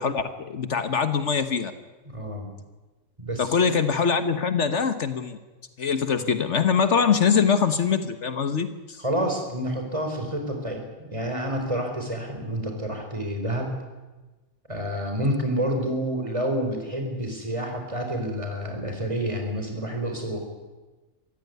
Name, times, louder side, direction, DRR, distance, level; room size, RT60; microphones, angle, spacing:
voice 1, 0.0-1.7 3.4-5.4 5.8-9.0, left 6 dB, 65° left, 10 dB, 1.5 m, -23 dB
voice 2, 2.1-2.5 3.2-3.7 9.0-13.8 14.7-20.4, equal, 25° right, 3 dB, 4.6 m, -29 dB
24.5 x 15.0 x 9.5 m, 1.2 s
omnidirectional pair, 1.3 m